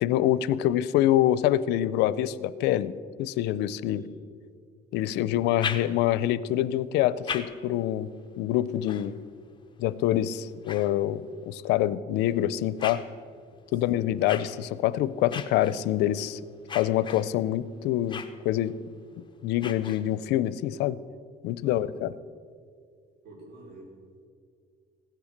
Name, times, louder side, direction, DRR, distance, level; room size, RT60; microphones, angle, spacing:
voice 1, 0.0-2.9 3.2-4.0 4.9-8.1 8.4-9.2 9.8-13.0 13.7-16.4 16.7-18.7 19.4-21.0 21.4-22.1, left 12 dB, 90° left, 17 dB, 0.5 m, -26 dB
voice 2, 3.8-4.2 5.0-5.4 13.7-14.1 21.6-22.0 23.2-23.9, right 2 dB, 75° right, -1 dB, 4.9 m, -49 dB
sound 1, 5.3-6.3 6.9-11.5 12.1-20.4, left 6 dB, 30° left, 1.0 m, -42 dB
16.0 x 10.5 x 6.5 m, 2.2 s
cardioid pair, 110°, 17 cm